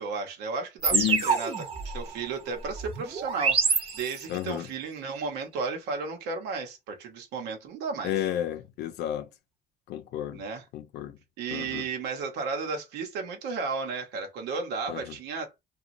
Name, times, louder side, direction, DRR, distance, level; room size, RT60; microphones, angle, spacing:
voice 1, 0.0-1.0 1.2-1.5 1.8-8.2 10.3-10.6 11.4-15.5, right 4 dB, 90° right, 0.9 m, -34 dB
sound 1, 0.8-4.5, right 5 dB, 35° right, 0.7 m, -28 dB
voice 2, 0.9-1.2 4.3-4.7 8.0-9.3 9.9-10.4 10.7-11.2 11.5-11.9 14.9-15.0, left 12 dB, 80° left, 0.6 m, -31 dB
2.9 x 2.3 x 2.5 m
cardioid pair, 110°, 17 cm